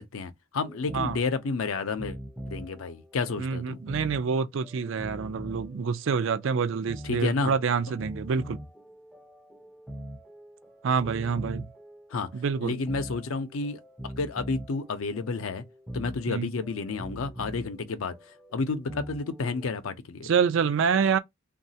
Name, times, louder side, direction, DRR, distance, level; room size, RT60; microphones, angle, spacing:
voice 1, 0.0-2.2 2.5-3.8 7.0-7.5 12.1-12.3 12.6-15.6 15.9-18.2 18.5-20.3, left 4 dB, 80° left, 0.5 m, -31 dB
sound 1, 0.6-19.8, equal, ahead, 0.4 m, -43 dB
voice 2, 3.4-8.6 10.8-11.6 12.3-12.8 16.3-16.5 20.2-21.2, right 6 dB, 65° right, 0.4 m, -27 dB
3.1 x 2.3 x 2.7 m
head